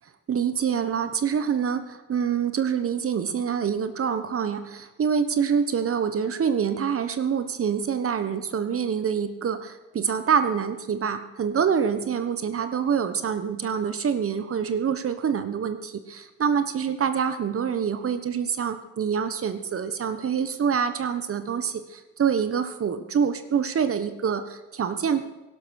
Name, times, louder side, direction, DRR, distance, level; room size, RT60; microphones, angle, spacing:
voice 1, 0.3-25.2, right 7 dB, 50° right, 10 dB, 1.3 m, -26 dB
18.0 x 12.0 x 6.5 m, 1.1 s
cardioid pair, 90°, 30 cm